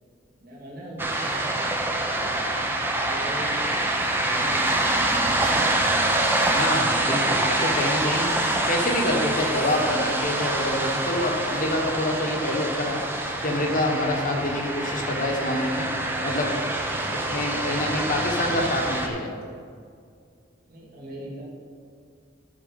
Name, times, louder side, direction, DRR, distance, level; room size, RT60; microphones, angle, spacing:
voice 1, 0.4-1.5 2.0-2.3 2.9-3.6 4.1-5.3 20.7-21.4, right 1 dB, 55° right, -5 dB, 2.3 m, -40 dB
sound 1, 1.0-19.1, right 1 dB, 10° right, 0.8 m, -25 dB
voice 2, 6.5-8.3 8.6-15.9 16.2-16.5 17.1-19.3, left 1 dB, 50° left, 1 dB, 1.3 m, -26 dB
sound 2, 14.3-19.5, equal, 5° left, 1.3 m, -44 dB
12.5 x 4.5 x 5.4 m, 2.2 s
head